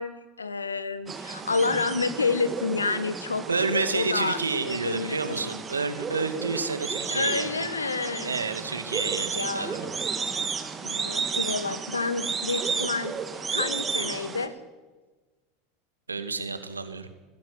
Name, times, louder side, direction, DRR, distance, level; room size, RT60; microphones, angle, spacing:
voice 1, 0.0-3.4 3.7-5.6 7.1-8.3 9.3-9.9 10.8-13.1 13.5-14.5, left 4 dB, 90° left, 14 dB, 1.4 m, -29 dB
sound 1, 1.1-14.5, right 5 dB, 25° right, 2.8 m, -33 dB
voice 2, 3.5-7.7 8.2-9.8 16.1-17.1, right 4 dB, 90° right, 9 dB, 2.1 m, -29 dB
19.5 x 15.5 x 9.8 m, 1.3 s
figure-of-eight pair, 80°, 0 cm